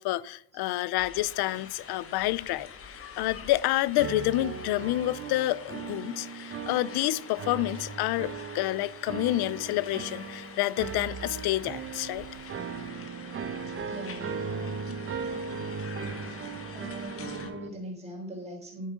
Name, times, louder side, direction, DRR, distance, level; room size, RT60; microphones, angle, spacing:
voice 1, 0.0-12.3, left 16 dB, 75° left, 0.6 m, -29 dB
sound 1, 1.0-17.5, left 6 dB, 35° left, 1.1 m, -46 dB
sound 2, 4.0-17.7, right 5 dB, 30° right, 0.8 m, -38 dB
voice 2, 13.8-15.7 16.7-18.9, equal, 15° right, 3.8 m, -42 dB
10.5 x 7.7 x 5.0 m
cardioid pair, 155°, 39 cm